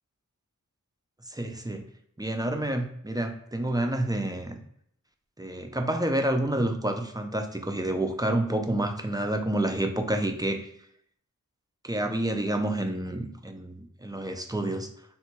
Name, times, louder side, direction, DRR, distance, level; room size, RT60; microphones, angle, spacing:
voice 1, 1.3-1.9 2.2-4.6 5.4-10.7 11.8-14.9, right 1 dB, 15° right, 5 dB, 0.3 m, -29 dB
3.5 x 2.1 x 2.9 m, 0.69 s
wide cardioid pair, 80°, 32 cm